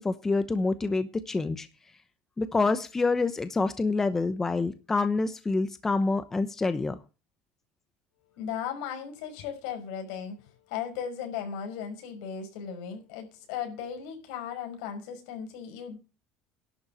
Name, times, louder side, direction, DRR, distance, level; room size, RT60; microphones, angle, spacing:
voice 1, 0.0-1.7 2.4-7.0, left 3 dB, 15° left, 0.9 m, -27 dB
voice 2, 8.4-16.0, left 8 dB, 80° left, 5.6 m, -36 dB
11.5 x 7.1 x 9.0 m
cardioid pair, 150°, 3 cm